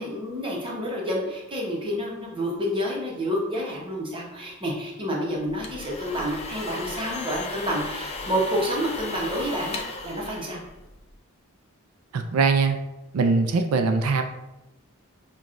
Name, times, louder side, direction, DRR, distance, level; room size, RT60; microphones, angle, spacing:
voice 1, 0.0-10.6, equal, 25° right, -3 dB, 0.9 m, -29 dB
sound 1, 5.4-11.1, left 3 dB, 30° left, 0.4 m, -36 dB
voice 2, 12.1-12.8 13.1-14.2, right 4 dB, 90° right, 6 dB, 0.4 m, -21 dB
5.8 x 2.3 x 2.5 m, 0.97 s
head